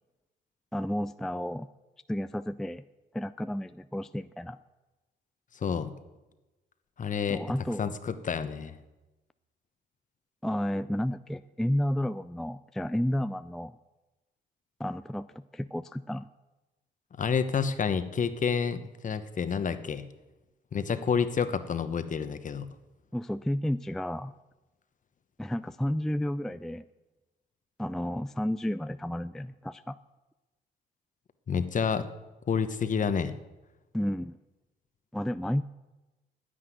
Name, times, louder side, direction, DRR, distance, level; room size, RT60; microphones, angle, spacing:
voice 1, 0.7-1.7 2.1-2.8 3.1-4.6 7.3-7.9 10.4-13.8 14.8-16.3 23.1-24.3 25.4-26.8 27.8-30.0 33.9-34.4 35.1-35.6, equal, ahead, 12 dB, 0.3 m, -31 dB
voice 2, 5.6-5.9 7.0-7.4 7.8-8.7 17.2-20.1 20.7-22.7 31.5-32.1 32.5-33.3, left 6 dB, 45° left, 11 dB, 1.1 m, -29 dB
10.0 x 9.2 x 9.4 m, 1.1 s
cardioid pair, 75°, 19 cm